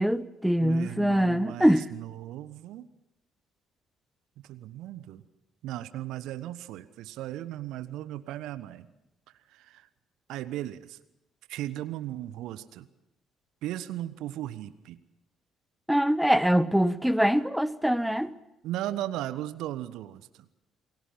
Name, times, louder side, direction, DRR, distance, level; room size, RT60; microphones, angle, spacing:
voice 1, 0.0-1.9 15.9-18.3, equal, ahead, 15 dB, 1.2 m, -23 dB
voice 2, 0.6-2.9 4.5-5.2 5.6-8.9 9.5-9.9 10.3-11.0 11.5-12.9 13.6-15.0 18.6-20.4, right 13 dB, 60° right, 14 dB, 1.1 m, -36 dB
29.0 x 21.5 x 5.8 m, 0.90 s
figure-of-eight pair, 50°, 0 cm